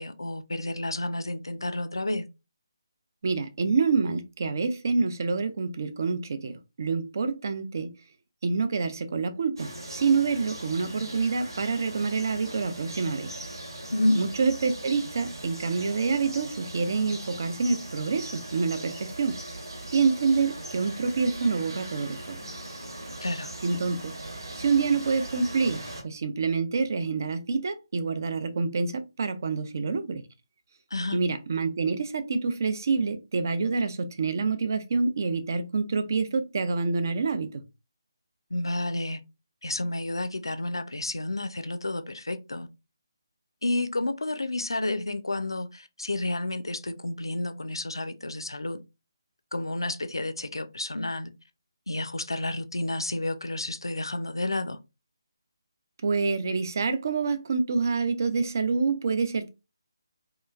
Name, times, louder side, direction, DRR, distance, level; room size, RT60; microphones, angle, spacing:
voice 1, 0.0-2.3 13.9-14.2 23.2-23.5 30.9-31.2 38.5-39.2 39.6-42.7 43.6-48.8 49.5-51.3 51.9-54.8, left 2 dB, 75° left, 0.4 m, -30 dB
voice 2, 3.2-7.9 8.4-13.3 14.2-19.4 19.9-22.4 23.6-24.1 24.6-30.2 31.1-37.6 56.0-59.5, right 4 dB, 45° right, 0.4 m, -27 dB
sound 1, 9.6-26.0, right 1 dB, 65° right, 1.1 m, -40 dB
2.9 x 2.3 x 2.3 m
figure-of-eight pair, 150°, 2 cm